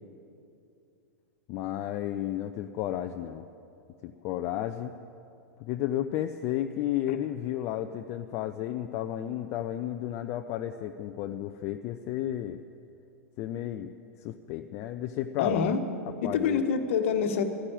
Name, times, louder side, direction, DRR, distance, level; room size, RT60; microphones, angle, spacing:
voice 1, 1.5-3.5 4.0-5.0 5.6-12.6 13.4-13.9 14.2-15.8 16.2-16.7, left 12 dB, 35° left, 7 dB, 0.5 m, -32 dB
voice 2, 15.4-15.8 16.2-17.4, left 6 dB, 55° left, 8 dB, 1.3 m, -26 dB
13.0 x 9.8 x 9.0 m, 2.6 s
figure-of-eight pair, 95°, 8 cm